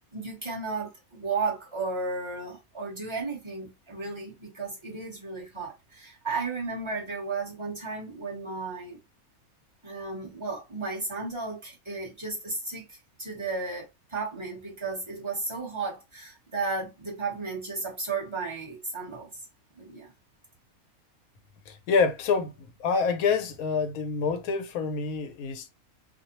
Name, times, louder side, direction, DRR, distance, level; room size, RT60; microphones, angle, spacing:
voice 1, 0.1-9.0 9.8-19.3 19.7-20.1, right 3 dB, 25° right, 0.9 m, -34 dB
voice 2, 21.7-22.5 22.8-25.7, left 5 dB, 80° left, 1.0 m, -27 dB
2.5 x 2.0 x 2.8 m
omnidirectional pair, 1.5 m